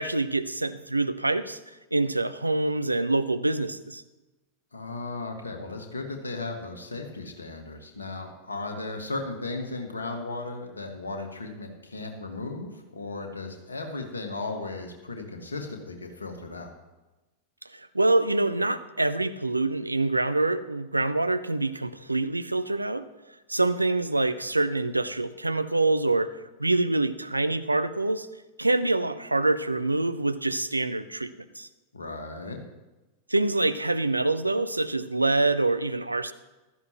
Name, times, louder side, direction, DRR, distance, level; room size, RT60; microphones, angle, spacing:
voice 1, 0.0-4.0 17.7-23.1 23.5-28.3 28.6-31.3 31.6-31.7 33.3-36.3, right 2 dB, 85° right, 12 dB, 0.5 m, -26 dB
voice 2, 4.7-16.7 31.9-32.6, left 3 dB, 75° left, 4 dB, 1.8 m, -36 dB
15.5 x 13.0 x 3.1 m, 1.1 s
figure-of-eight pair, 90°, 0 cm